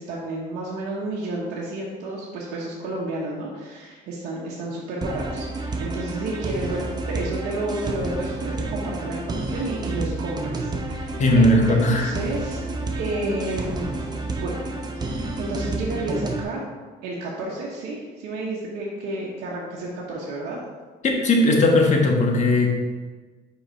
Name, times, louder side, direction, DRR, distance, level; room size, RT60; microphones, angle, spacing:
voice 1, 0.0-12.7 13.0-14.0 14.4-14.5 14.9-16.7 17.0-20.6, right 2 dB, 80° right, -5 dB, 1.2 m, -31 dB
sound 1, 5.0-16.4, right 2 dB, 25° right, 0.8 m, -30 dB
voice 2, 11.2-12.1 21.0-22.7, left 1 dB, 45° left, 1 dB, 1.4 m, -18 dB
5.5 x 5.0 x 4.5 m, 1.4 s
cardioid pair, 110°, 17 cm